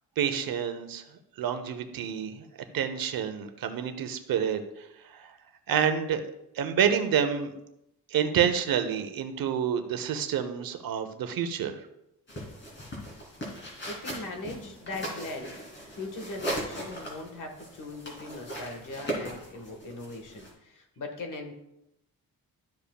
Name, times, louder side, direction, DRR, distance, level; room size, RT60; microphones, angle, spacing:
voice 1, 0.2-1.0 1.4-2.4 2.7-4.6 5.1-5.3 5.7-6.2 6.5-7.5 8.1-11.8, right 8 dB, 70° right, 8 dB, 0.9 m, -28 dB
sound 1, 12.3-20.5, right 1 dB, 30° left, 3.0 m, -38 dB
voice 2, 13.8-15.6 15.9-21.5, left 2 dB, 60° left, 4 dB, 1.5 m, -40 dB
12.0 x 7.1 x 2.3 m, 0.83 s
cardioid pair, 135°, 36 cm